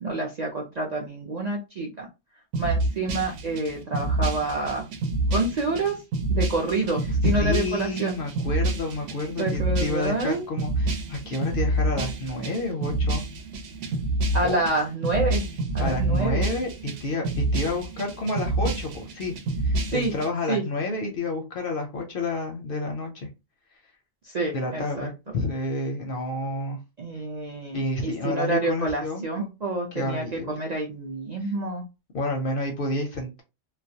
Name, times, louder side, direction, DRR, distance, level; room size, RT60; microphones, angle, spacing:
voice 1, 0.0-2.1 2.6-4.9 5.3-6.0 6.3-8.1 9.4-10.4 14.3-15.4 15.7-16.4 19.9-20.1 20.5-20.6 24.2-25.1 27.0-31.8, right 2 dB, 55° right, -1 dB, 0.5 m, -28 dB
sound 1, 2.5-20.3, right 2 dB, 80° right, 0.9 m, -28 dB
voice 2, 7.2-13.2 14.4-14.6 15.8-19.3 19.6-23.3 24.5-26.8 27.7-29.5 29.9-30.6 31.4-31.5 32.1-33.4, left 2 dB, 60° left, 3 dB, 0.6 m, -30 dB
2.3 x 2.1 x 2.6 m, 0.26 s
omnidirectional pair, 1.3 m